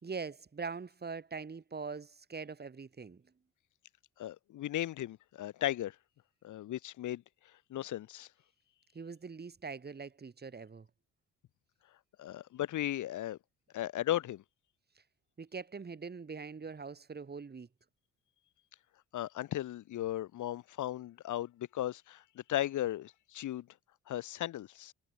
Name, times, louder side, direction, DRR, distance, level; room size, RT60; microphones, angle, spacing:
voice 1, 0.0-3.2 8.9-10.9 15.4-17.7, right 5 dB, 35° right, 5.4 m, -42 dB
voice 2, 4.2-5.9 6.4-7.2 7.7-8.3 12.2-13.4 13.7-14.4 19.1-23.7 24.1-24.9, left 13 dB, 80° left, 3.2 m, -36 dB
cardioid pair, 90°, 30 cm